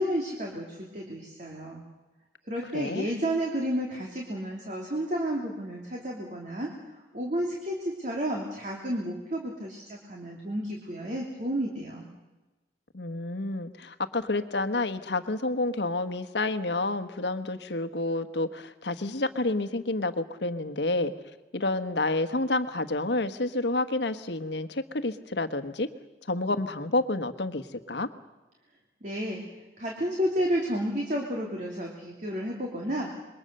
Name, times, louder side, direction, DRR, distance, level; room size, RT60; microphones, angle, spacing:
voice 1, 0.0-1.8 2.5-6.7 7.1-12.1 29.0-29.4 29.8-33.1, equal, 45° right, -1 dB, 2.9 m, -31 dB
voice 2, 2.7-3.1 12.9-21.1 21.5-25.9 26.3-28.1, left 2 dB, 80° left, 9 dB, 1.3 m, -29 dB
27.0 x 22.5 x 6.7 m, 1.1 s
head